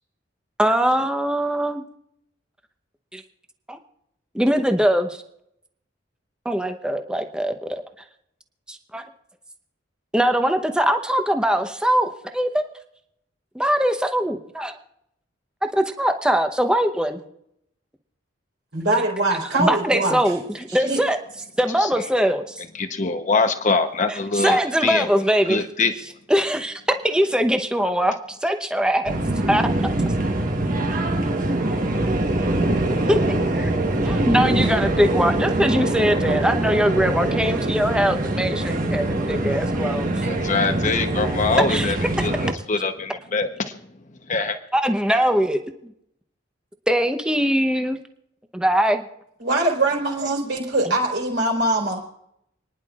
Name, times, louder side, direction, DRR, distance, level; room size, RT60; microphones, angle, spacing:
voice 1, 0.6-1.8 3.1-3.2 3.7-3.8 4.3-5.2 6.4-7.8 8.7-9.0 10.1-12.6 13.5-14.7 15.7-17.2 19.6-20.4 20.7-21.2 21.6-22.6 24.3-25.6 26.3-28.1 28.4-29.1 29.5-29.6 33.1-33.2 33.5-33.7 34.0-40.1 41.7-42.3 44.7-45.9 46.9-48.0 48.5-49.0, equal, 5° right, 6 dB, 0.9 m, -21 dB
voice 2, 18.7-20.2 20.8-21.0 49.4-52.0, right 2 dB, 65° right, 0 dB, 3.9 m, -22 dB
voice 3, 22.7-25.1 25.5-25.9 40.2-43.7 44.3-44.6, left 4 dB, 40° left, 6 dB, 0.9 m, -23 dB
sound 1, 29.1-42.5, right 1 dB, 45° right, 1.3 m, -23 dB
29.5 x 10.5 x 2.4 m, 0.76 s
head